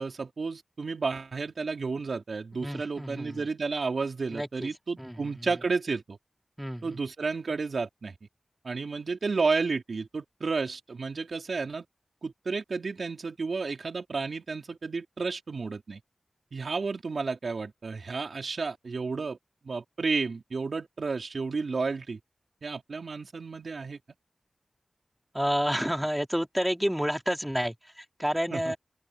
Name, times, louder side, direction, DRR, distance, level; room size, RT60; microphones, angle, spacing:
voice 1, 0.0-6.2 6.8-8.2 8.6-11.8 12.2-16.0 16.5-19.4 19.6-22.2 22.6-24.0 28.5-28.7, right 4 dB, 80° right, 3.9 m, -32 dB
voice 2, 2.5-3.4 4.3-4.7 5.0-5.2 6.6-6.8 25.3-28.8, equal, 5° right, 3.3 m, -29 dB
open air
wide cardioid pair, 50°, 0 cm